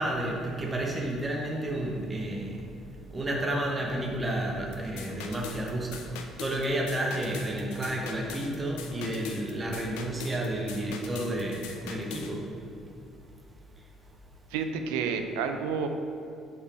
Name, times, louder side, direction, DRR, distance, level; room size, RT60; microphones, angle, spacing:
voice 1, 0.0-2.7 3.1-6.0 6.4-12.5, right 1 dB, 25° right, 0 dB, 1.0 m, -31 dB
sound 1, 4.7-12.3, left 6 dB, 65° left, 0.5 m, -42 dB
voice 2, 14.5-15.9, right 6 dB, 70° right, 6 dB, 0.4 m, -30 dB
6.4 x 4.8 x 4.4 m, 2.6 s
figure-of-eight pair, 50°, 0 cm